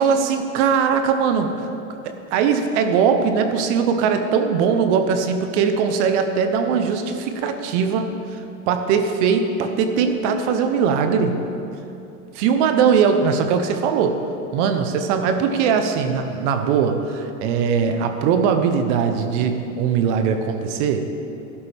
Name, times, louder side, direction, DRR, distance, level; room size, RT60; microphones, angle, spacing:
voice 1, 0.0-1.7 2.0-8.4 8.7-11.4 12.3-14.2 14.5-21.0, right 6 dB, 60° right, 7 dB, 1.1 m, -20 dB
13.0 x 11.5 x 3.6 m, 2.8 s
hypercardioid pair, 110°, 40 cm